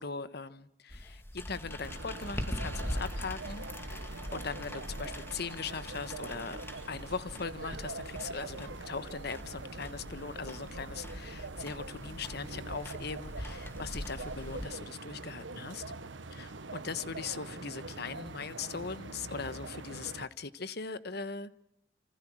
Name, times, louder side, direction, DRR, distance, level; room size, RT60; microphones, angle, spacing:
voice 1, 0.0-6.6 6.9-15.8 16.3-21.6, left 5 dB, 60° left, 1.3 m, -40 dB
sound 1, 0.9-14.7, equal, 15° left, 2.2 m, -42 dB
sound 2, 1.8-20.3, right 3 dB, 80° right, 1.3 m, -44 dB
27.5 x 26.0 x 6.3 m
head